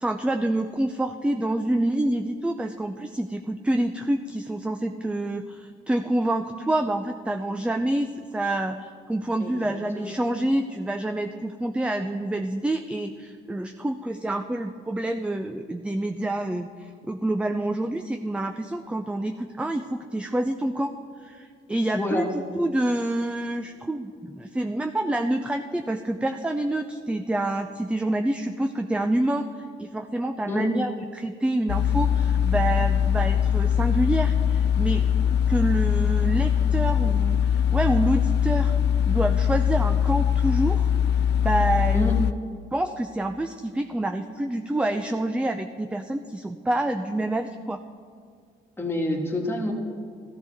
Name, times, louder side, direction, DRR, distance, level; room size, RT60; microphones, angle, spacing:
voice 1, 0.0-20.9 21.2-38.7 39.1-40.9 41.4-42.2 42.7-47.8, right 1 dB, 5° right, 6 dB, 0.4 m, -27 dB
voice 2, 9.4-10.1 21.9-22.3 30.5-30.7 41.9-42.2 48.8-49.7, left 1 dB, 10° left, 0 dB, 1.9 m, -28 dB
sound 1, 31.7-42.3, left 8 dB, 60° left, 0.4 m, -22 dB
14.5 x 13.5 x 3.5 m, 2.2 s
cardioid pair, 90°, 20 cm